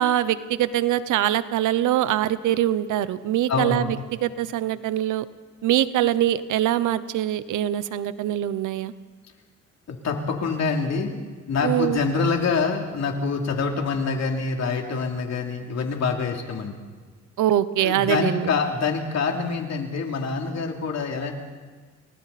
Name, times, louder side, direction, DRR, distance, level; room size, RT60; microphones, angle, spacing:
voice 1, 0.0-5.2 5.6-8.9 11.6-12.0 17.4-18.5, right 12 dB, 80° right, 15 dB, 0.9 m, -23 dB
voice 2, 3.5-3.9 9.9-11.2 11.5-16.8 17.8-21.3, left 4 dB, 60° left, 2 dB, 3.2 m, -26 dB
29.5 x 22.0 x 4.3 m, 1.5 s
cardioid pair, 90°, 30 cm